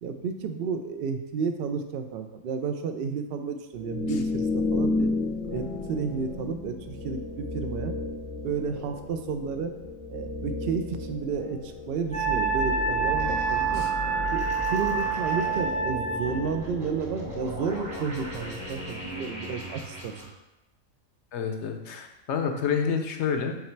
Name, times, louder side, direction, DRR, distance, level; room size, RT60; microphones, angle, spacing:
voice 1, 0.0-5.1 5.5-7.9 8.4-9.8 10.1-13.9 14.3-20.1, right 5 dB, 60° right, 7 dB, 0.6 m, -32 dB
sound 1, 3.7-19.5, left 3 dB, 30° left, 0.8 m, -34 dB
Wind instrument woodwind instrument, 12.1-16.4, right 5 dB, 10° left, 0.4 m, -27 dB
sound 2, 12.1-20.2, equal, 80° right, 2.4 m, -37 dB
voice 2, 21.3-23.6, left 6 dB, 60° left, 5 dB, 0.9 m, -28 dB
7.2 x 3.2 x 4.5 m, 0.96 s
omnidirectional pair, 1.4 m